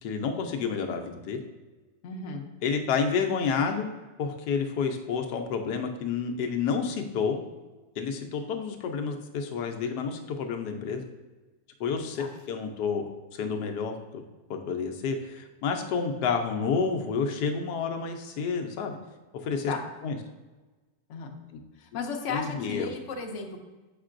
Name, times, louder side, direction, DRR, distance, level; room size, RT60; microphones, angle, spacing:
voice 1, 0.0-1.4 2.6-3.9 4.2-7.4 8.0-11.0 11.8-13.0 13.3-14.2 14.5-19.0 19.4-19.7 20.0-20.2 22.3-22.9, left 5 dB, 80° left, 4 dB, 1.2 m, -29 dB
voice 2, 2.0-2.4 12.1-12.3 19.7-19.8 21.1-21.3 21.8-23.6, left 5 dB, 60° left, 3 dB, 0.9 m, -35 dB
7.3 x 5.1 x 2.5 m, 1.2 s
omnidirectional pair, 1.7 m